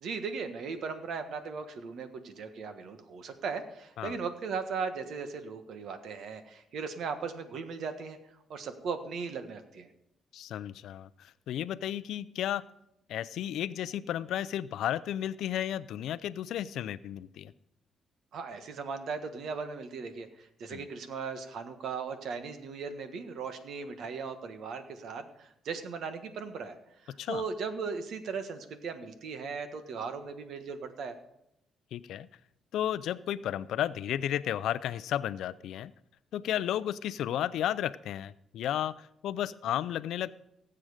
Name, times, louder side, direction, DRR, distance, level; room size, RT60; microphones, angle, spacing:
voice 1, 0.0-8.2 8.5-9.9 18.3-26.8 27.0-31.1, right 5 dB, 70° right, 8 dB, 1.5 m, -38 dB
voice 2, 10.3-12.6 13.1-17.5 20.7-20.8 27.2-27.4 31.9-32.3 32.7-35.9 36.3-40.3, left 11 dB, 80° left, 16 dB, 0.5 m, -33 dB
18.0 x 7.7 x 5.0 m, 0.81 s
cardioid pair, 90°, 0 cm